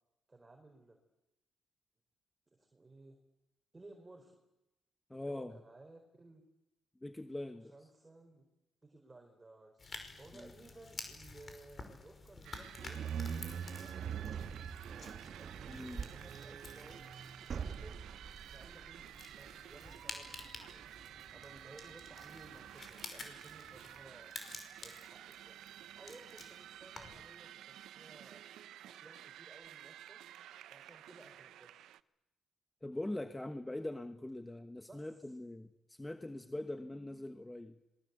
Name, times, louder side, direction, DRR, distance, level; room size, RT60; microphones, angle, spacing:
voice 1, 0.3-1.0 2.5-3.2 3.7-4.4 5.1-6.4 7.7-8.5 8.8-9.9 10.1-13.0 13.8-14.7 15.2-18.0 18.5-19.0 19.4-20.8 21.3-24.3 24.8-25.6 26.0-28.4 28.8-30.2 30.7-31.8 34.9-35.1, right 2 dB, 20° right, 3 dB, 4.5 m, -58 dB
voice 2, 5.1-5.6 7.0-7.7 10.3-10.5 15.7-16.1 32.8-37.8, left 1 dB, 10° left, 8 dB, 1.3 m, -42 dB
sound 1, 9.8-27.3, left 3 dB, 35° left, 5.4 m, -52 dB
sound 2, 12.4-32.0, right 12 dB, 80° right, 0.8 m, -53 dB
sound 3, 12.8-23.9, right 7 dB, 50° right, 1.9 m, -45 dB
26.5 x 21.5 x 8.3 m, 0.92 s
cardioid pair, 90°, 0 cm